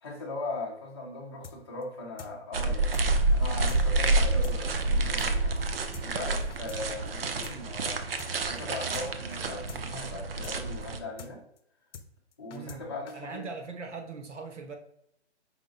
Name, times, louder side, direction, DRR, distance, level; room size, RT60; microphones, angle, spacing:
voice 1, 0.0-5.7 6.0-8.1 8.5-11.4 12.4-13.5, left 2 dB, 20° left, 0.7 m, -39 dB
sound 1, 1.4-1.6 1.8-1.9 2.2-2.3 2.6-2.7 2.9-3.1 3.3-3.4 3.7-3.8 4.1-4.2 4.4-4.6 4.8-4.9 5.2-5.3 5.6-5.7 5.9-6.1 6.3-6.8 7.1-7.2 7.4-7.6 7.8-7.9 8.2-8.3 8.6-8.7 8.9-9.1 9.3-9.4 9.7-9.8 10.1-10.2 10.4-10.6 10.8-10.9 11.2-11.3 11.6-11.7 11.9-12.1 12.3-12.8 13.1-13.2, left 6 dB, 80° left, 0.6 m, -44 dB
sound 2, 2.5-11.0, right 2 dB, 55° right, 0.5 m, -28 dB
voice 2, 12.5-14.8, right 4 dB, 90° right, 1.0 m, -41 dB
5.0 x 2.2 x 3.8 m
hypercardioid pair, 175°, 35 cm